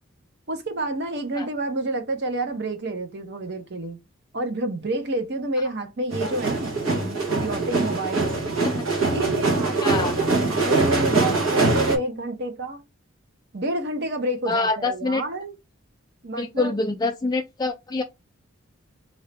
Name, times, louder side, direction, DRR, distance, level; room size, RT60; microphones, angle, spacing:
voice 1, 0.5-4.0 4.3-8.3 9.0-12.8 13.5-15.5 16.2-16.7, right 1 dB, 55° right, 0.9 m, -29 dB
sound 1, 6.1-12.0, right 3 dB, 85° right, 1.3 m, -23 dB
voice 2, 9.8-10.3 14.5-15.2 16.4-18.0, left 3 dB, 20° left, 0.3 m, -25 dB
4.1 x 2.7 x 3.4 m
head